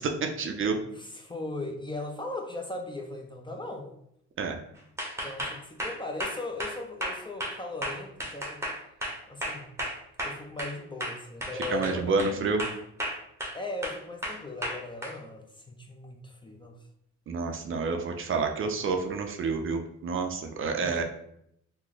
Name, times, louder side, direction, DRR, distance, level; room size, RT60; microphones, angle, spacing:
voice 1, 0.0-0.8 4.4-4.6 11.7-12.7 17.3-21.0, right 4 dB, 45° right, 5 dB, 0.5 m, -29 dB
voice 2, 0.9-3.9 5.2-8.6 9.3-9.7 10.2-12.4 13.5-16.7 20.7-21.0, left 2 dB, 15° left, 2 dB, 0.5 m, -38 dB
sound 1, 5.0-10.7 11.0-12.3 12.6-13.6 13.8-15.1, equal, 10° right, 0.8 m, -34 dB
2.9 x 2.1 x 3.8 m, 0.74 s
cardioid pair, 90°, 30 cm